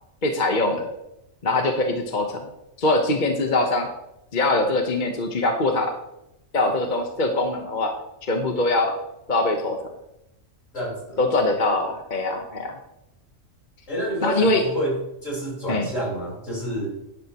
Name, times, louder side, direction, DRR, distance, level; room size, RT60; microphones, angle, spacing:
voice 1, 0.2-0.9 1.4-2.4 2.8-3.9 4.3-5.9 6.5-7.9 8.3-8.9 9.3-9.8 11.2-12.8 14.2-14.6 15.7-15.9, left 2 dB, 40° left, 3 dB, 1.2 m, -22 dB
voice 2, 10.7-11.2 13.9-14.9 15.2-16.9, right 1 dB, 70° left, -4 dB, 5.3 m, -28 dB
11.5 x 11.0 x 3.0 m, 0.87 s
omnidirectional pair, 1.4 m